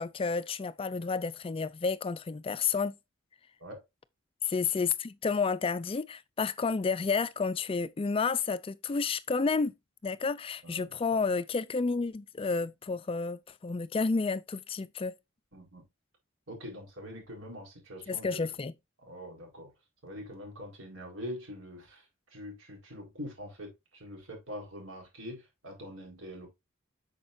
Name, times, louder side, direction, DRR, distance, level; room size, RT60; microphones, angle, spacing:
voice 1, 0.0-2.9 4.4-9.7 10.0-15.2 18.1-18.7, left 4 dB, 25° left, 0.3 m, -31 dB
voice 2, 10.6-11.0 15.5-15.8 16.5-18.5 19.0-19.7 20.0-22.0 22.3-26.5, equal, 70° right, 4.5 m, -44 dB
8.7 x 6.5 x 2.6 m
head